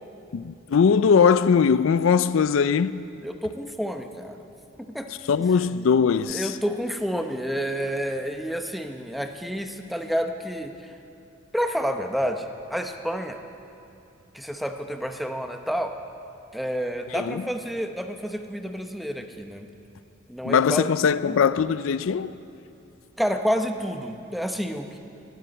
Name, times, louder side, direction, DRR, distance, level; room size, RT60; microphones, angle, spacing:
voice 1, 0.3-3.0 5.3-6.5 17.1-17.4 20.4-22.3, left 6 dB, 70° left, 0.4 m, -20 dB
voice 2, 3.2-4.5 4.9-5.1 6.3-10.9 11.5-13.4 14.3-15.9 16.5-19.7 20.3-20.9 21.2-21.4 23.2-25.0, equal, ahead, 0.7 m, -29 dB
19.5 x 9.2 x 7.8 m
head